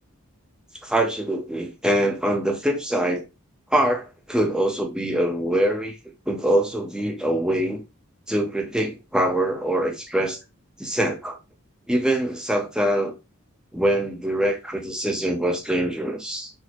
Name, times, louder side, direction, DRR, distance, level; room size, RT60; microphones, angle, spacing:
voice 1, 0.8-3.2 3.7-5.9 6.3-7.8 8.3-10.4 10.8-11.4 11.9-13.1 13.7-16.5, right 1 dB, 5° right, 0.5 m, -24 dB
4.1 x 2.0 x 2.9 m
head